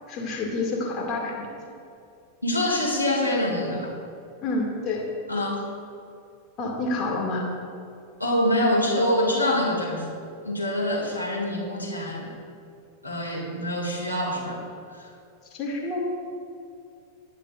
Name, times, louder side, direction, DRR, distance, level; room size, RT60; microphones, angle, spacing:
voice 1, 0.1-1.5 4.4-5.0 6.6-7.5 15.5-16.0, left 2 dB, 30° left, -1 dB, 2.4 m, -28 dB
voice 2, 2.4-3.9 5.3-5.6 8.2-10.1 10.4-12.3 13.0-14.6 14.9-15.1, left 1 dB, 90° left, -4 dB, 2.4 m, -25 dB
19.5 x 9.9 x 2.6 m, 2.5 s
figure-of-eight pair, 90°, 0 cm